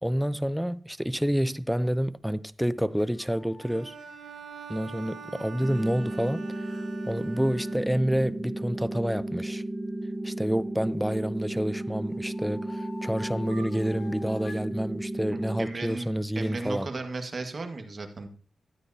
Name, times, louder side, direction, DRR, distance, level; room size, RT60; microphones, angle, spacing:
voice 1, 0.0-3.9 4.7-6.4 7.1-9.6 10.2-16.9, equal, 5° right, 0.5 m, -28 dB
sound 1, 3.0-6.8 9.8-11.0 11.5-14.7, left 2 dB, 85° left, 2.5 m, -49 dB
Bowed string instrument, 3.6-8.2, right 6 dB, 65° right, 1.3 m, -45 dB
sound 2, 5.6-15.6, right 1 dB, 25° right, 1.3 m, -34 dB
voice 2, 15.3-18.3, right 3 dB, 45° right, 1.6 m, -35 dB
13.0 x 9.2 x 2.8 m
cardioid pair, 75°, 0 cm